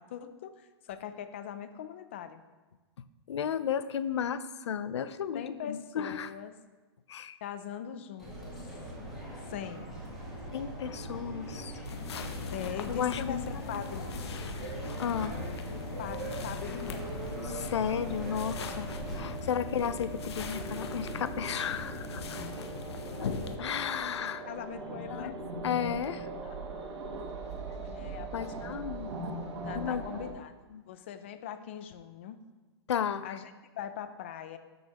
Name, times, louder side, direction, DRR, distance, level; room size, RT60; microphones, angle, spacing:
voice 1, 0.0-2.4 5.3-6.6 7.4-8.6 9.5-9.9 12.5-14.0 16.0-17.1 19.9-20.0 24.5-25.4 26.4-26.6 27.7-28.9 29.6-30.5 30.9-32.4 33.2-34.6, left 9 dB, 25° left, 11 dB, 0.4 m, -41 dB
voice 2, 3.3-6.3 7.1-7.4 10.5-11.7 12.9-13.4 13.7-13.8 15.0-15.4 17.4-22.4 23.2-23.3 23.6-24.4 25.1-25.3 25.6-26.3 28.3-29.1 29.7-30.0 30.7-30.8 32.9-33.2, left 8 dB, 85° left, 14 dB, 0.6 m, -33 dB
sound 1, 8.2-19.4, right 1 dB, ahead, 1.9 m, -41 dB
sound 2, 11.8-23.6, left 5 dB, 70° left, 0.9 m, -40 dB
sound 3, 14.6-30.3, right 3 dB, 80° right, 1.6 m, -41 dB
13.0 x 6.4 x 2.9 m, 1.2 s
hypercardioid pair, 175°, 14 cm